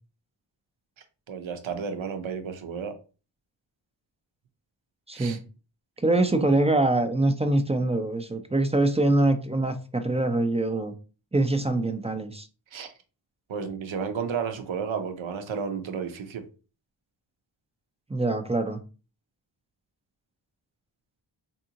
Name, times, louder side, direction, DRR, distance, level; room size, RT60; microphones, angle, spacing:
voice 1, 1.3-2.9 5.1-5.4 12.7-12.9 13.5-16.4, right 6 dB, 75° right, 0.7 m, -32 dB
voice 2, 5.1-5.4 6.0-10.9 11.3-12.5 18.1-18.8, right 2 dB, 15° right, 0.4 m, -24 dB
3.5 x 2.7 x 2.8 m
wide cardioid pair, 80°, 47 cm